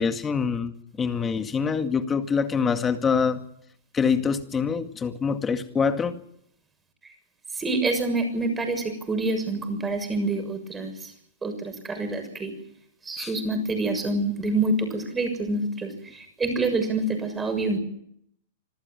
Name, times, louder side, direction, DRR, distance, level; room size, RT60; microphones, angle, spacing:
voice 1, 0.0-3.4 3.9-6.1 13.2-13.3, left 6 dB, 20° left, 8 dB, 2.1 m, -25 dB
voice 2, 7.5-11.1 11.4-12.5 13.0-17.8, right 2 dB, 15° right, 7 dB, 6.9 m, -27 dB
26.0 x 14.5 x 9.3 m, 0.73 s
hypercardioid pair, 120°, 0 cm